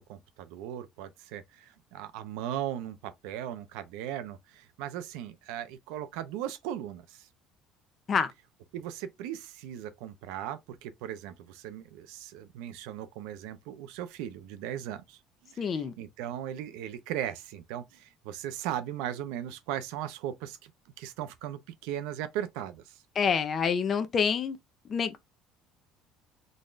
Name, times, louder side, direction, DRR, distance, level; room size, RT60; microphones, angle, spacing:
voice 1, 0.0-7.3 8.7-20.7 21.0-23.0, right 11 dB, 90° right, 0.6 m, -38 dB
voice 2, 15.6-15.9 23.2-24.6 24.9-25.2, left 6 dB, 25° left, 0.5 m, -27 dB
4.0 x 2.5 x 3.2 m
cardioid pair, 170°, 0 cm